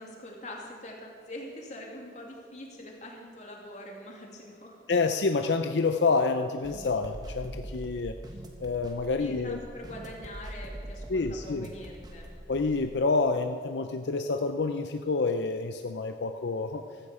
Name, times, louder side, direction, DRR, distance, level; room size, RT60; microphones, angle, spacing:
voice 1, 0.0-4.8 9.2-12.3, left 1 dB, 40° left, -1 dB, 2.6 m, -44 dB
voice 2, 4.9-8.1 8.6-9.6 11.1-11.7 12.5-16.8, left 4 dB, 80° left, 7 dB, 0.6 m, -28 dB
sound 1, 6.6-13.0, equal, 25° right, 1.4 m, -43 dB
15.5 x 14.0 x 5.0 m, 2.1 s
head